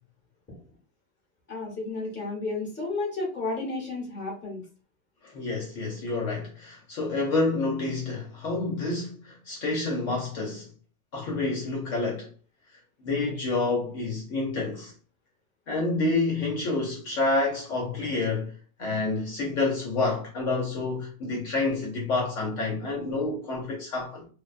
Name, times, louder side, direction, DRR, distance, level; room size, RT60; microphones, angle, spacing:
voice 1, 1.5-4.6, left 3 dB, 10° left, 0.8 m, -32 dB
voice 2, 5.2-10.7 11.1-12.3 13.0-14.9 15.7-24.3, left 3 dB, 65° left, 0.9 m, -28 dB
2.6 x 2.1 x 2.3 m
omnidirectional pair, 1.6 m